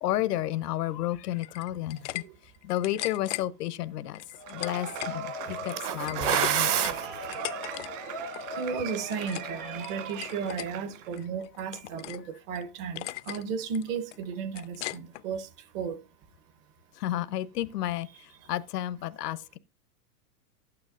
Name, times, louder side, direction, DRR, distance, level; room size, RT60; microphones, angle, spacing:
voice 1, 0.0-2.2 2.6-4.2 4.5-5.3 5.6-6.3 6.6-6.7 17.0-18.1 18.5-19.6, left 13 dB, 75° left, 0.8 m, -31 dB
sound 1, 1.4-2.2 2.5-3.4 4.1-5.2 5.5-7.9 8.1-8.5 8.9-9.5 9.8-10.7 11.1-12.2 12.5-12.6 13.0-13.4 13.7-15.2, left 16 dB, 50° left, 0.5 m, -38 dB
Cheering / Applause / Crowd, 4.4-11.2, right 3 dB, 50° right, 2.3 m, -38 dB
voice 2, 5.8-7.1 8.6-12.2 12.5-15.4 15.7-16.0, right 8 dB, 35° right, 0.9 m, -32 dB
12.0 x 8.8 x 2.5 m
hypercardioid pair, 145°, 48 cm